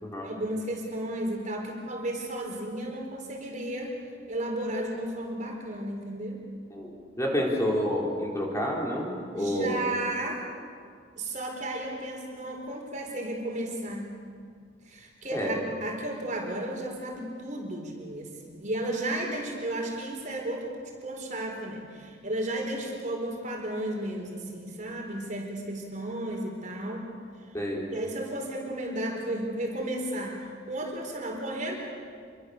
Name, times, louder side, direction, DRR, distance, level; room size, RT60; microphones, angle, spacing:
voice 1, 0.2-3.9 4.3-6.4 9.3-10.5 11.2-14.2 14.9-20.7 21.0-27.1 27.9-31.7, right 1 dB, 40° right, 1 dB, 4.4 m, -33 dB
voice 2, 7.2-9.8 15.3-15.6 27.5-27.9, equal, 15° left, -2 dB, 4.4 m, -29 dB
27.5 x 24.5 x 6.8 m, 2.1 s
head